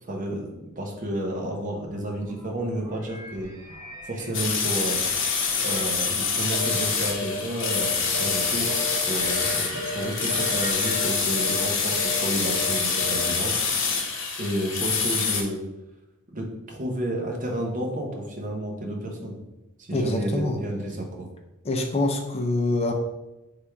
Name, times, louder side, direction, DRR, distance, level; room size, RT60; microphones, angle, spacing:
voice 1, 0.0-3.5 4.1-5.0 5.6-8.7 9.1-13.6 14.4-15.6 16.3-19.4 19.8-21.3, right 1 dB, 40° right, 1 dB, 0.8 m, -31 dB
sound 1, 1.7-13.1, right 1 dB, 15° right, 1.6 m, -44 dB
sound 2, 4.3-15.4, left 5 dB, 65° left, 0.9 m, -26 dB
sound 3, 6.5-6.8 7.1-7.3 7.6-9.0 9.2-9.5 9.7-10.0 10.3-10.6 10.8-11.1 11.4-11.6 11.9-12.2 12.4-12.7 13.0-13.3, left 2 dB, 80° right, 1.5 m, -33 dB
voice 2, 19.9-20.6 21.6-22.9, left 2 dB, 30° left, 4 dB, 0.4 m, -25 dB
4.5 x 3.4 x 3.4 m, 0.98 s
head